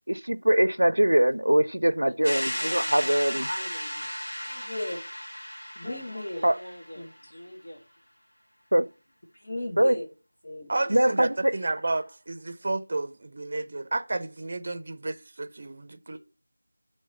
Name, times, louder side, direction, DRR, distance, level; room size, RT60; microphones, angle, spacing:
voice 1, 0.1-3.5 6.4-6.5 8.7-8.9 9.8-10.0 10.9-11.5, right 1 dB, 80° right, 0.5 m, -22 dB
voice 2, 2.0-4.1 5.8-7.8, left 1 dB, 65° left, 2.0 m, -45 dB
sound 1, 2.2-7.0, equal, 90° left, 1.5 m, -34 dB
voice 3, 2.8-5.0 5.7-6.4 7.0-7.4 9.3-10.1 10.4-11.2, left 1 dB, 40° left, 1.3 m, -38 dB
voice 4, 10.7-16.2, right 2 dB, 35° right, 0.6 m, -31 dB
8.8 x 3.3 x 5.4 m
figure-of-eight pair, 170°, 0 cm